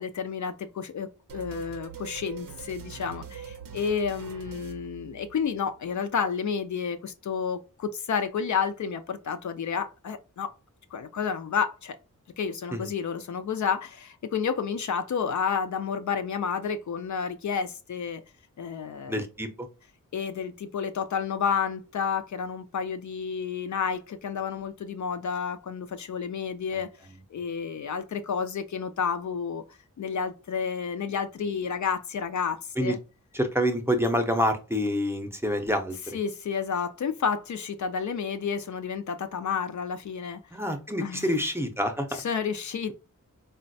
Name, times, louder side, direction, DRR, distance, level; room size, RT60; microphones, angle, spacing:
voice 1, 0.0-10.5 10.9-12.0 12.4-18.2 18.6-19.3 20.1-26.9 27.3-33.0 36.1-40.4 41.0-41.4 42.1-42.9, left 6 dB, 60° left, 0.4 m, -30 dB
sound 1, 1.3-5.6, right 8 dB, 90° right, 0.6 m, -43 dB
voice 2, 19.1-19.7 32.8-33.0 33.3-36.2 40.5-42.1, equal, 5° right, 0.6 m, -27 dB
3.8 x 2.1 x 2.6 m
wide cardioid pair, 85°, 33 cm